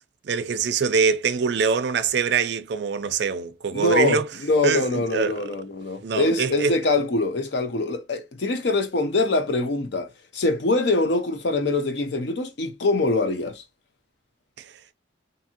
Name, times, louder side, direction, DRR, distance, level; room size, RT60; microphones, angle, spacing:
voice 1, 0.3-4.3 4.6-5.4 6.0-6.8, right 5 dB, 55° right, 0.4 m, -24 dB
voice 2, 3.7-13.6, left 2 dB, 60° left, 0.5 m, -24 dB
2.6 x 2.6 x 2.7 m
head